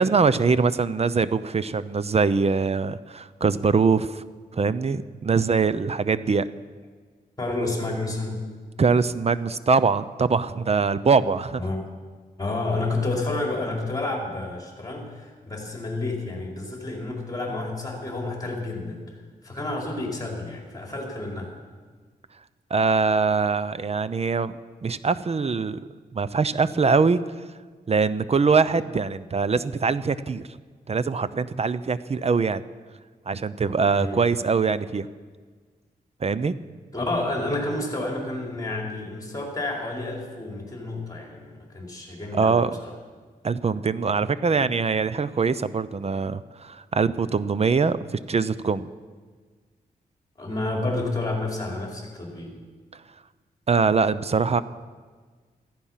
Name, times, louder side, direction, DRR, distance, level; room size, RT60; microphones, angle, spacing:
voice 1, 0.0-4.2 4.5-6.5 8.8-11.6 22.7-25.8 26.1-27.2 27.9-30.4 30.9-32.6 33.3-35.1 36.2-36.6 42.3-42.8 43.4-48.9 53.7-54.6, right 5 dB, 40° right, 15 dB, 0.7 m, -23 dB
voice 2, 7.4-8.4 11.6-11.9 12.4-19.2 19.4-21.5 34.0-34.2 36.9-42.9 47.2-47.3 50.4-52.5, left 2 dB, 25° left, -1 dB, 4.6 m, -30 dB
15.0 x 15.0 x 5.8 m, 1.5 s
cardioid pair, 70°, 16 cm